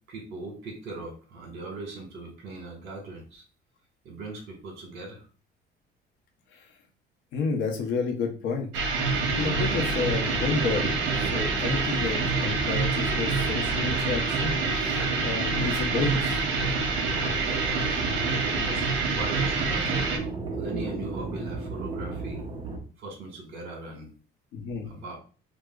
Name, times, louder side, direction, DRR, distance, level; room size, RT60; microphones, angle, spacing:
voice 1, 0.1-3.4 4.0-5.3 17.3-18.0 18.6-20.3 20.5-22.4 23.0-24.1 24.8-25.2, right 2 dB, 60° right, 0 dB, 1.5 m, -40 dB
voice 2, 7.3-8.7 9.0-16.4 24.5-24.9, left 5 dB, 85° left, 3 dB, 0.8 m, -31 dB
sound 1, 8.7-20.2, right 4 dB, 75° right, 0.8 m, -27 dB
sound 2, 9.1-22.8, right 3 dB, 25° right, 0.6 m, -35 dB
4.7 x 2.1 x 2.3 m, 0.37 s
cardioid pair, 150°, 19 cm